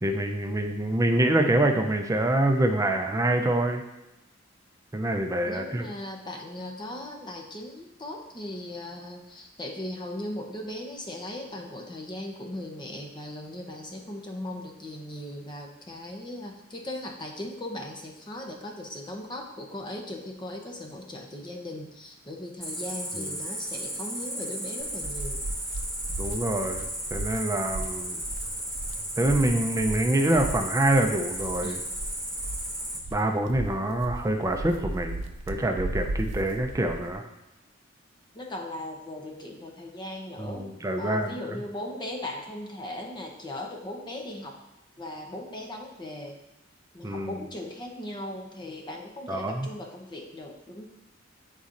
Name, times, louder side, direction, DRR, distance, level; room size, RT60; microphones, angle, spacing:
voice 1, 0.0-3.8 4.9-5.9 23.1-23.3 26.2-28.2 29.2-31.8 33.1-35.2 35.5-37.3 40.4-41.6 47.0-47.5 49.3-49.7, right 1 dB, 15° right, 4 dB, 0.5 m, -26 dB
voice 2, 5.4-25.4 31.6-31.8 38.3-40.7 41.0-44.6 45.0-46.4 46.9-50.9, left 1 dB, 25° left, 2 dB, 0.7 m, -38 dB
Cricket, 22.6-33.0, right 1 dB, ahead, 1.3 m, -34 dB
sound 1, 24.8-37.1, right 2 dB, 75° right, 0.5 m, -36 dB
9.7 x 4.1 x 2.5 m, 0.94 s
head